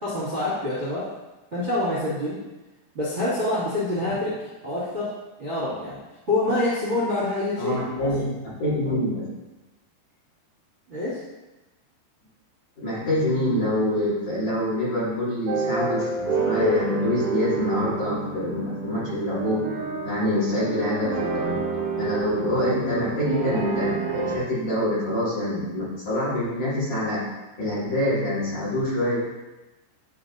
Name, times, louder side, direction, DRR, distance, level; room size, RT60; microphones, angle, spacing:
voice 1, 0.0-1.1 1.5-2.4 2.9-4.3 4.6-5.1 5.4-6.0 6.3-8.1 10.9-11.2, left 2 dB, 25° right, -12 dB, 1.5 m, -26 dB
voice 2, 7.6-9.3 12.8-16.1 16.4-19.6 20.0-21.6 22.0-27.3 27.6-29.2, left 1 dB, 45° left, -9 dB, 3.4 m, -25 dB
sound 1, 15.5-24.4, right 5 dB, 70° right, 1.8 m, -29 dB
11.0 x 4.3 x 2.7 m, 1.1 s
omnidirectional pair, 5.2 m